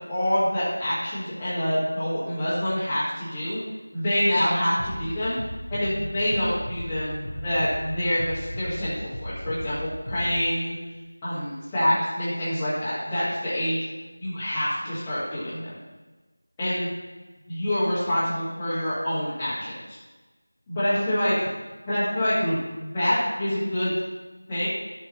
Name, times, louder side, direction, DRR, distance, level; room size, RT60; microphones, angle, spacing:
voice 1, 0.1-3.6 3.9-5.3 5.7-10.7 11.2-13.8 14.2-15.7 16.6-16.9 17.5-20.0 20.7-21.5 21.9-23.9 24.5-24.7, equal, 10° left, -16 dB, 1.7 m, -26 dB
Bass drum, 4.8-10.4, equal, 80° left, 1.5 m, -36 dB
12.0 x 7.8 x 3.0 m, 1.2 s
figure-of-eight pair, 175°, 0 cm